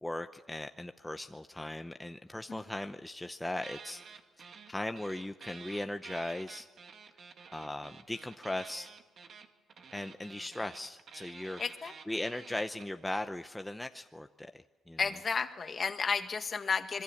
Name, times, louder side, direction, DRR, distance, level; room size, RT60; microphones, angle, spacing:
voice 1, 0.0-6.7 7.5-8.9 9.9-11.6 12.1-14.5 14.9-15.0, left 1 dB, 10° left, 7 dB, 0.8 m, -38 dB
sound 1, 3.6-4.7 5.0-13.2, right 5 dB, 55° right, 2.0 m, -51 dB
voice 2, 11.6-11.9 15.0-17.0, left 5 dB, 40° left, 7 dB, 1.9 m, -32 dB
26.0 x 22.5 x 7.2 m, 1.3 s
cardioid pair, 90°, 0 cm